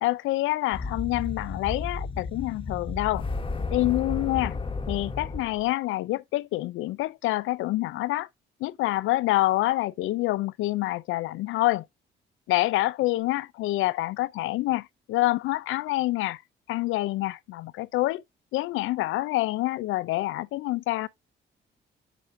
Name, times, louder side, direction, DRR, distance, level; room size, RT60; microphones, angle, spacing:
voice 1, 0.0-3.3 3.7-4.6 4.9-8.3 8.6-11.9 12.5-16.4 16.7-18.2 18.5-21.1, left 17 dB, 90° left, 0.5 m, -27 dB
sound 1, 0.7-5.7, left 3 dB, 25° left, 1.2 m, -33 dB
8.4 x 5.1 x 2.6 m
cardioid pair, 90°, 20 cm